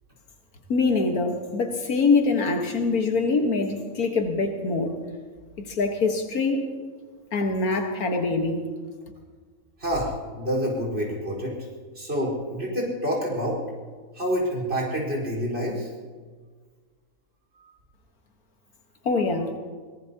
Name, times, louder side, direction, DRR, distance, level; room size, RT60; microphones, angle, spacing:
voice 1, 0.7-4.9 5.7-6.6 7.3-8.6 19.1-19.5, left 3 dB, 80° left, 4 dB, 1.9 m, -24 dB
voice 2, 9.8-11.5 11.9-13.6 14.1-15.9 17.6-17.7, equal, 45° right, -3 dB, 5.0 m, -27 dB
23.5 x 18.5 x 2.9 m, 1.5 s
omnidirectional pair, 1.5 m